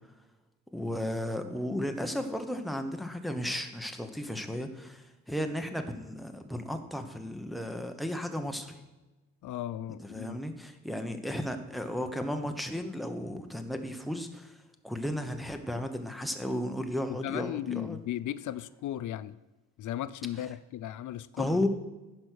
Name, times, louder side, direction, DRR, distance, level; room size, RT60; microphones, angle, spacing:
voice 1, 0.7-8.8 10.0-18.0 21.4-21.7, left 1 dB, ahead, 1.0 m, -34 dB
voice 2, 9.4-10.4 17.1-19.4 19.8-21.6, left 12 dB, 90° left, 0.5 m, -36 dB
14.5 x 5.4 x 6.3 m
cardioid pair, 125°, 29 cm